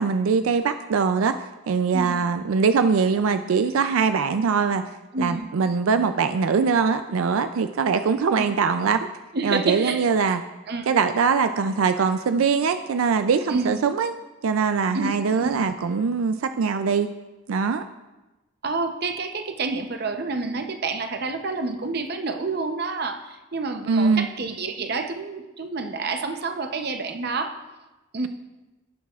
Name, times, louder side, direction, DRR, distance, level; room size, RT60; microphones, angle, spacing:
voice 1, 0.0-1.3 1.7-4.8 5.2-9.1 9.4-10.4 10.9-14.1 14.4-17.1 17.5-17.8 23.9-24.3, right 5 dB, 85° right, 9 dB, 0.4 m, -22 dB
voice 2, 5.1-5.5 8.4-8.6 9.3-10.1 10.7-10.9 13.5-13.8 14.9-15.7 18.6-27.6 28.1-28.3, right 3 dB, 50° right, 7 dB, 0.7 m, -29 dB
17.0 x 7.3 x 2.4 m, 1.1 s
head